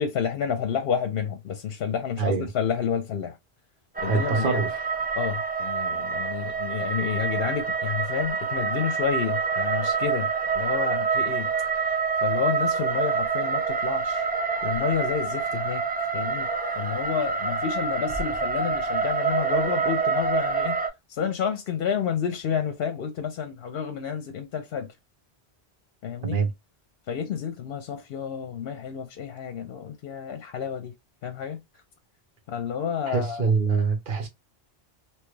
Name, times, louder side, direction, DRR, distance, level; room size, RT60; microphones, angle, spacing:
voice 1, 0.0-3.4 4.0-4.6 5.2-11.5 11.8-14.2 14.6-15.8 16.1-16.5 16.8-20.8 21.1-24.9 26.0-26.4 27.1-30.9 31.2-31.6 32.5-33.5, left 7 dB, 65° left, 0.8 m, -30 dB
voice 2, 2.2-2.5 4.0-4.8 26.2-26.5 33.1-34.3, right 5 dB, 55° right, 1.0 m, -25 dB
sound 1, 3.9-20.9, right 5 dB, 15° right, 0.3 m, -27 dB
3.0 x 2.2 x 3.0 m
omnidirectional pair, 1.1 m